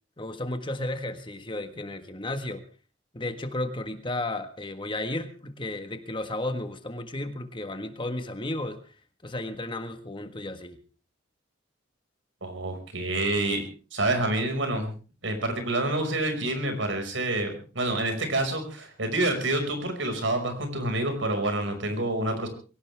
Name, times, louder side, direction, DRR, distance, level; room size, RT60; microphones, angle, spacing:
voice 1, 0.2-2.6 3.1-8.9 9.2-10.8, left 1 dB, 25° left, 8 dB, 1.6 m, -33 dB
voice 2, 12.4-13.7 13.9-14.9 15.2-22.5, right 2 dB, 75° right, 5 dB, 5.7 m, -28 dB
23.0 x 17.5 x 3.5 m, 0.38 s
head